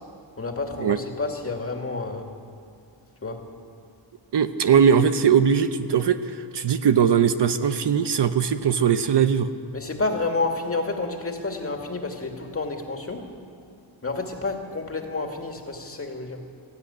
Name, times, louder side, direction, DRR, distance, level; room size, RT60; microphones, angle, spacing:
voice 1, 0.4-2.3 3.2-3.5 9.7-13.3 14.0-16.4, left 3 dB, 30° left, 3 dB, 2.3 m, -29 dB
voice 2, 4.3-9.5, right 7 dB, 60° right, 9 dB, 0.9 m, -20 dB
19.5 x 14.5 x 10.0 m, 2.4 s
wide cardioid pair, 125°, 48 cm